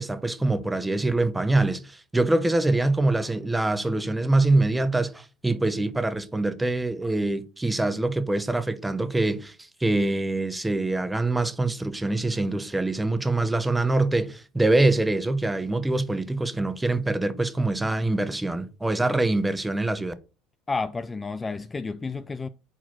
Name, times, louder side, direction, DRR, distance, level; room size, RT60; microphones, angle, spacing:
voice 1, 0.0-9.6 9.8-20.1, right 2 dB, 10° right, 0.7 m, -24 dB
voice 2, 20.7-22.5, left 4 dB, 20° left, 0.3 m, -31 dB
4.8 x 4.2 x 5.9 m
supercardioid pair, 90°, 0 cm